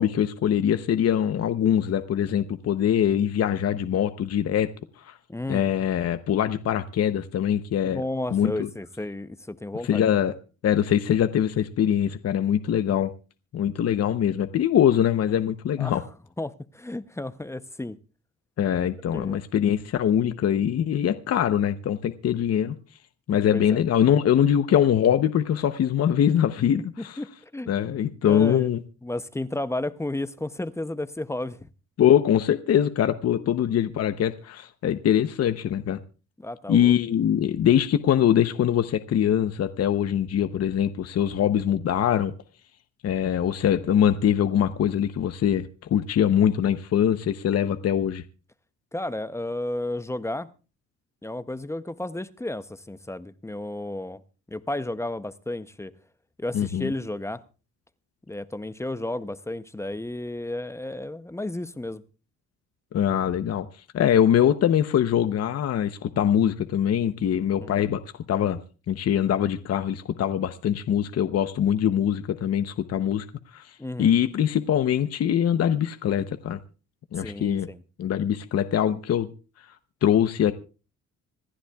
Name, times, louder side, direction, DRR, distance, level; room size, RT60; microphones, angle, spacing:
voice 1, 0.0-4.7 5.0-5.2 5.5-8.0 8.3-8.7 9.8-10.3 10.6-13.1 13.5-16.0 18.6-22.7 23.3-27.2 27.7-28.8 32.0-36.0 36.7-42.3 43.0-48.2 56.5-56.9 62.9-68.6 68.9-73.3 73.5-76.6 77.1-77.7 78.0-79.3 80.0-80.5, left 9 dB, 55° left, 0.8 m, -23 dB
voice 2, 5.3-5.7 7.8-10.0 15.8-16.0 16.4-18.0 19.1-19.4 23.5-23.8 27.2-27.7 28.3-28.7 29.0-31.6 36.4-36.9 48.9-50.5 51.2-54.2 54.5-55.9 56.4-57.4 58.3-62.0 67.6-67.8 73.8-74.1 77.1-77.8, left 1 dB, 10° left, 0.6 m, -32 dB
26.0 x 11.0 x 2.3 m
cardioid pair, 90°, 30 cm